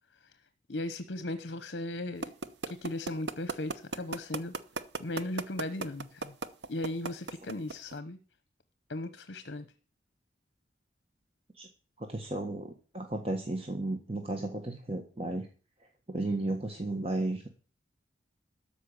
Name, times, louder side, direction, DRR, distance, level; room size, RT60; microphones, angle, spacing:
voice 1, 0.7-2.3 2.7-4.6 5.0-6.3 6.7-8.2 8.9-9.7, left 2 dB, 70° left, 11 dB, 0.9 m, -37 dB
sound 1, 2.2-7.9, right 3 dB, 75° right, 0.9 m, -34 dB
voice 2, 12.0-15.5 16.1-17.5, right 2 dB, 30° right, 3 dB, 1.4 m, -34 dB
13.0 x 5.4 x 8.7 m, 0.37 s
head